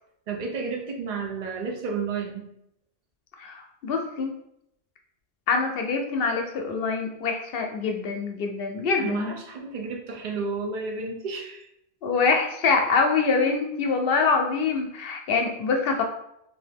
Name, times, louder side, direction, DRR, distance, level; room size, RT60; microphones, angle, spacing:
voice 1, 0.3-2.5 9.0-11.7, right 4 dB, 55° right, 2 dB, 0.7 m, -32 dB
voice 2, 3.4-4.3 5.5-9.4 12.0-16.0, left 4 dB, 65° left, 3 dB, 0.7 m, -25 dB
2.7 x 2.5 x 3.4 m, 0.77 s
omnidirectional pair, 1.1 m